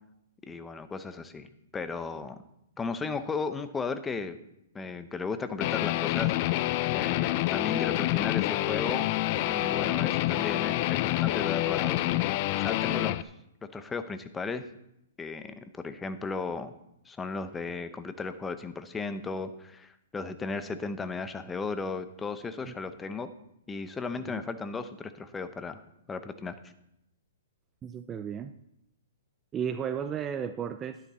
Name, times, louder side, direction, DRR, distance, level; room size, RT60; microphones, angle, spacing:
voice 1, 0.4-1.5 1.7-2.4 2.8-4.4 4.7-9.1 9.5-13.3 13.6-14.6 15.2-16.7 17.1-23.3 23.7-25.8 26.1-26.5, left 4 dB, 10° left, 10 dB, 0.7 m, -35 dB
Guitar, 5.6-13.2, left 16 dB, 40° left, 0.4 m, -27 dB
voice 2, 27.8-28.5 29.5-31.0, right 8 dB, 15° right, 10 dB, 0.5 m, -34 dB
12.0 x 10.5 x 4.3 m, 0.81 s
hypercardioid pair, 150°, 0 cm